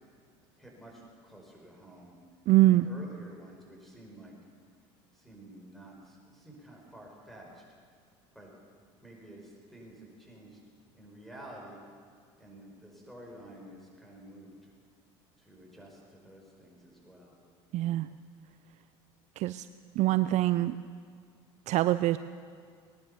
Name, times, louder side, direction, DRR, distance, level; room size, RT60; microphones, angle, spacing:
voice 1, 0.6-2.1 2.6-4.3 5.1-7.6 8.3-8.5 9.0-10.6 10.9-11.8 12.4-14.7 15.4-17.3, right 1 dB, ahead, -1 dB, 4.9 m, -50 dB
voice 2, 2.5-2.9 17.7-18.1 19.4-19.7 20.0-20.8 21.7-22.2, right 16 dB, 55° right, 13 dB, 0.4 m, -24 dB
19.5 x 10.5 x 6.8 m, 2.1 s
supercardioid pair, 90°, 14 cm